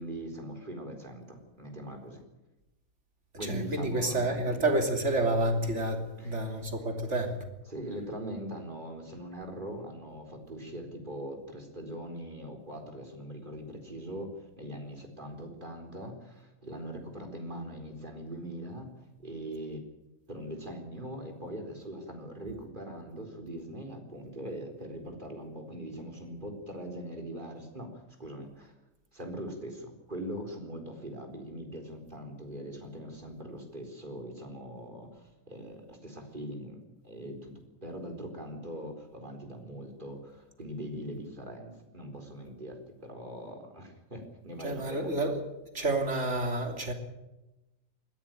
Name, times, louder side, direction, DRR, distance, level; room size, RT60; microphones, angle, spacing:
voice 1, 0.0-2.2 3.4-4.6 6.2-6.6 7.7-19.8 20.3-28.7 29.1-37.5 37.8-45.1, right 1 dB, 35° right, 4.2 m, -41 dB
voice 2, 3.4-7.4 44.6-45.4 45.7-46.9, right 2 dB, 55° right, 3.5 m, -29 dB
20.5 x 15.5 x 9.2 m
omnidirectional pair, 1.5 m